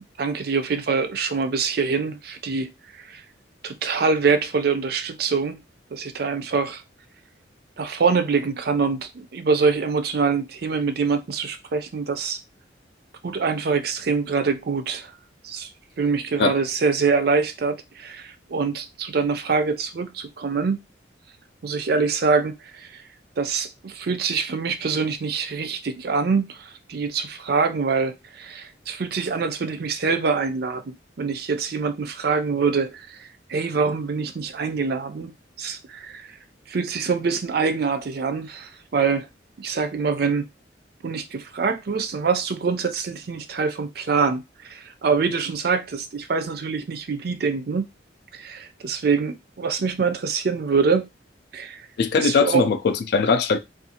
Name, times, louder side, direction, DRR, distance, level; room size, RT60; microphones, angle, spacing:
voice 1, 0.2-3.2 3.6-5.6 5.9-6.8 7.8-12.4 13.2-15.1 15.4-15.7 16.0-20.8 21.6-23.0 23.4-35.3 35.6-36.3 36.7-39.3 39.6-40.5 41.0-47.9 48.3-51.1 51.5-51.9 52.2-52.7, right 5 dB, 55° right, 0.4 m, -25 dB
voice 2, 52.0-53.6, left 5 dB, 60° left, 0.3 m, -20 dB
2.5 x 2.3 x 2.7 m
head